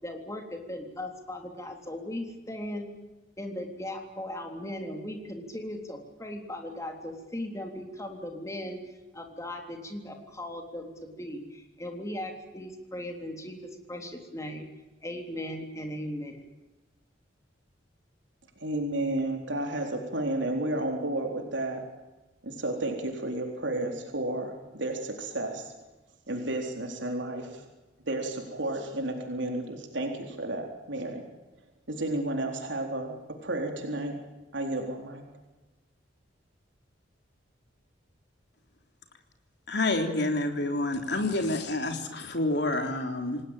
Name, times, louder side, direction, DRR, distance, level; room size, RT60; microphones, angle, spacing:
voice 1, 0.0-2.9 3.4-8.8 9.1-14.7 15.0-16.5, left 1 dB, 15° left, 3 dB, 3.6 m, -38 dB
voice 2, 18.6-21.8 22.4-25.7 26.3-27.6 28.1-31.2 31.9-34.2 34.5-35.2, right 1 dB, 75° right, 3 dB, 4.0 m, -32 dB
voice 3, 39.7-43.4, left 2 dB, 60° left, 5 dB, 3.5 m, -28 dB
27.5 x 19.0 x 9.0 m, 1.1 s
head